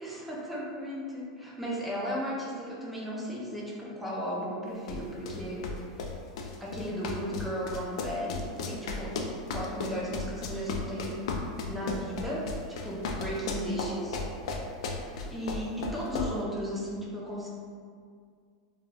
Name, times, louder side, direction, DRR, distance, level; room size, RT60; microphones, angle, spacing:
voice 1, 0.0-6.0 6.6-9.2 9.5-11.2 11.7-12.5 12.8-14.2 15.3-17.5, equal, ahead, -6 dB, 0.5 m, -35 dB
sound 1, 4.9-16.4, left 3 dB, 70° left, 0.3 m, -35 dB
2.3 x 2.3 x 3.1 m, 2.1 s
supercardioid pair, 140°, 3 cm